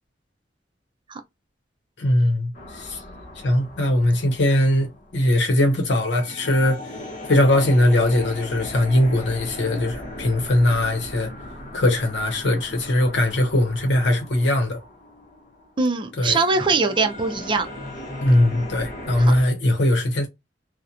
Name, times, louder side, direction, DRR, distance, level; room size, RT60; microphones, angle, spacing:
voice 1, 2.0-3.0 3.4-7.0 7.2-11.3 11.7-14.8 16.2-16.4 18.2-20.3, left 1 dB, 85° left, 0.7 m, -20 dB
sound 1, 2.5-19.4, left 1 dB, 45° left, 0.7 m, -38 dB
voice 2, 15.8-17.7 19.2-19.3, right 3 dB, 30° right, 0.4 m, -22 dB
2.8 x 2.1 x 2.4 m
head